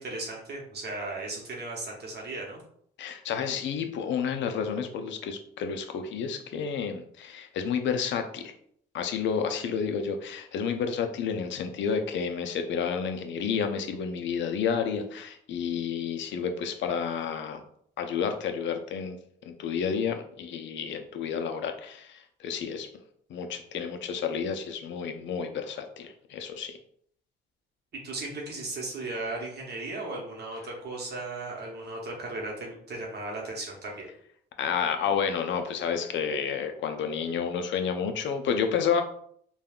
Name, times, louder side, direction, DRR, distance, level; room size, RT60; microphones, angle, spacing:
voice 1, 0.0-2.6 28.0-34.1, right 2 dB, 55° right, -2 dB, 0.9 m, -36 dB
voice 2, 3.0-8.5 8.9-17.6 18.0-19.2 19.5-22.9 23.3-26.8 34.6-39.0, left 6 dB, 70° left, 6 dB, 0.5 m, -30 dB
3.4 x 2.2 x 2.3 m, 0.65 s
cardioid pair, 90°, 20 cm